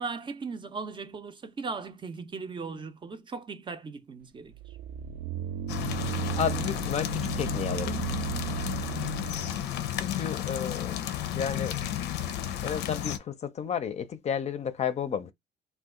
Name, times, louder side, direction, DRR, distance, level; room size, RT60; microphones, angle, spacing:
voice 1, 0.0-4.5, right 4 dB, 30° right, 0.5 m, -38 dB
sound 1, 4.5-9.6, right 10 dB, 80° right, 0.5 m, -35 dB
sound 2, 5.7-13.2, left 11 dB, 90° left, 0.5 m, -32 dB
voice 2, 6.4-8.0 10.0-11.0 11.3-11.8 12.6-15.3, left 8 dB, 40° left, 0.5 m, -32 dB
2.8 x 2.3 x 3.6 m
cardioid pair, 110°, 17 cm